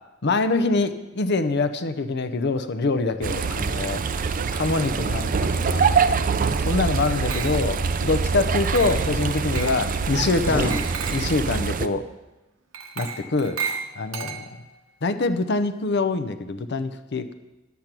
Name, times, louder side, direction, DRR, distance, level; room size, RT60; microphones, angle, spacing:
voice 1, 0.2-4.0 4.5-5.9 6.6-10.8 11.1-12.1 13.0-13.6 14.0-14.5 15.0-17.3, left 3 dB, 55° left, 10 dB, 0.7 m, -24 dB
sound 1, 3.2-11.9, right 5 dB, 45° right, 0.5 m, -24 dB
Glass, 7.0-7.9 8.7-9.1 9.5-9.8 10.7-11.4 12.7-14.8, right 6 dB, 90° right, 1.1 m, -34 dB
sound 2, 10.4-11.7, equal, 10° left, 1.6 m, -30 dB
10.5 x 8.3 x 6.0 m, 1.0 s
head